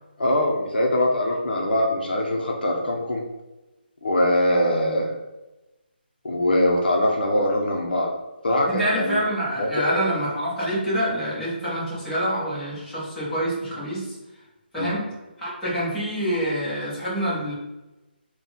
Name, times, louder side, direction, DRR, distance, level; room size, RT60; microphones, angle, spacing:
voice 1, 0.2-3.2 4.0-5.1 6.2-8.1 8.4-9.2 9.6-10.1 14.8-14.9, left 1 dB, 60° left, 0 dB, 0.7 m, -22 dB
voice 2, 8.7-14.1 14.7-15.0 15.4-17.5, equal, 5° left, -15 dB, 1.1 m, -26 dB
3.8 x 2.3 x 4.2 m, 1.1 s
hypercardioid pair, 175°, 6 cm